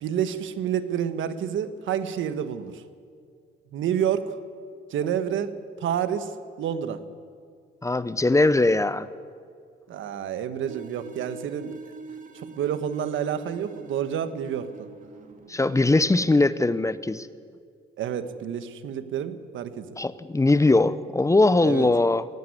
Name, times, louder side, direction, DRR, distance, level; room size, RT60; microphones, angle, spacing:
voice 1, 0.0-2.8 3.7-4.4 4.9-6.3 6.6-7.0 9.9-11.7 12.3-14.9 18.0-19.9 21.6-21.9, right 9 dB, 75° right, 11 dB, 1.4 m, -29 dB
voice 2, 7.8-9.1 15.5-17.3 20.0-22.3, left 2 dB, 15° left, 15 dB, 0.7 m, -21 dB
sound 1, 10.7-16.3, right 4 dB, 40° right, 2.1 m, -44 dB
16.5 x 16.5 x 9.6 m, 2.2 s
cardioid pair, 90°, 20 cm